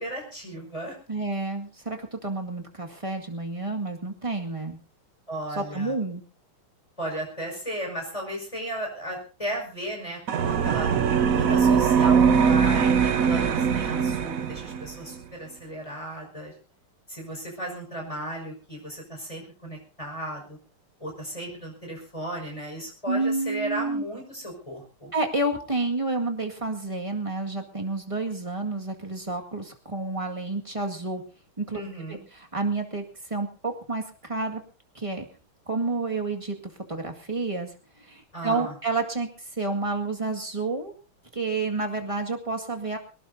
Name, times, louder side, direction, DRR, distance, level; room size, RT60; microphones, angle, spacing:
voice 1, 0.0-0.9 5.3-5.9 7.0-10.9 11.3-16.5 17.1-20.6 21.0-25.1 31.7-32.2 38.3-38.7, right 1 dB, 15° left, 0 dB, 5.6 m, -35 dB
voice 2, 1.1-4.8 5.5-6.2 23.1-24.0 25.1-31.2 31.6-31.8 32.1-33.0 33.3-34.6 34.9-35.3 35.7-36.6 36.9-37.7 38.1-39.3 39.6-40.9 41.3-43.0, right 3 dB, 15° right, 2 dB, 1.9 m, -29 dB
sound 1, 10.3-14.9, right 6 dB, 55° right, 1.0 m, -21 dB
22.5 x 18.5 x 2.7 m, 0.34 s
omnidirectional pair, 2.3 m